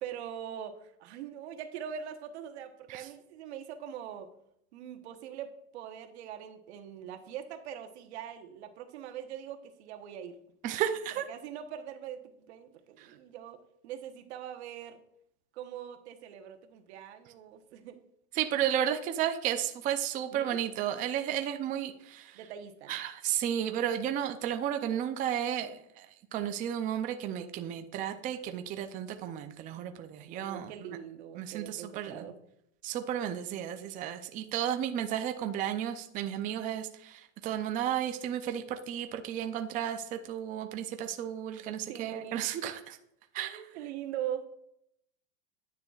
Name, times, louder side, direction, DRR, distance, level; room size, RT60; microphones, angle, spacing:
voice 1, 0.0-4.3 4.7-10.3 11.1-13.6 13.8-15.0 15.5-18.0 20.3-20.6 22.3-23.0 30.3-32.4 41.9-42.5 43.4-44.5, right 9 dB, 80° right, 7 dB, 1.1 m, -42 dB
voice 2, 10.6-11.2 18.3-22.4 22.9-26.1 26.3-30.7 31.4-32.3 32.8-43.0 43.3-43.6, right 10 dB, 25° right, 7 dB, 0.4 m, -33 dB
9.8 x 6.7 x 2.4 m, 0.76 s
supercardioid pair, 145°, 33 cm